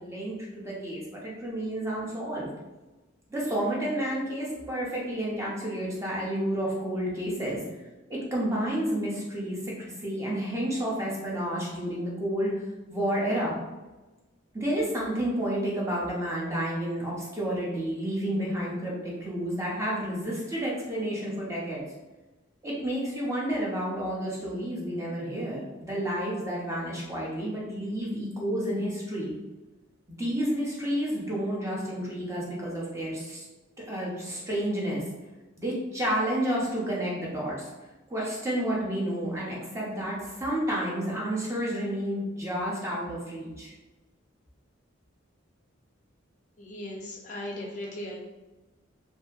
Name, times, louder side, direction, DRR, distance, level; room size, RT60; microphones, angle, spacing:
voice 1, 0.0-2.5 3.3-7.6 8.1-13.6 14.5-21.8 22.6-29.4 30.1-33.4 33.8-35.0 35.6-37.7 38.1-43.7, right 1 dB, 15° right, -5 dB, 0.6 m, -30 dB
voice 2, 46.6-48.2, left 1 dB, 35° left, -1 dB, 0.4 m, -37 dB
2.7 x 2.5 x 2.3 m, 1.1 s
head